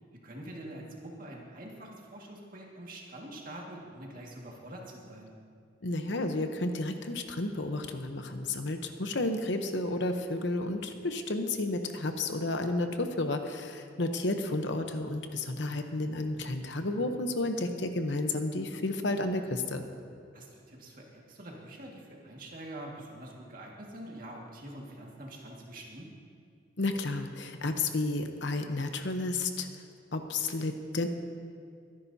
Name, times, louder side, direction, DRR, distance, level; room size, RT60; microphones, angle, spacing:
voice 1, 0.2-5.3 20.3-26.1, right 1 dB, 45° right, -2 dB, 1.9 m, -45 dB
voice 2, 5.8-19.8 26.8-29.7 30.1-31.1, left 2 dB, 65° left, 6 dB, 0.9 m, -32 dB
23.0 x 10.5 x 2.8 m, 2.3 s
head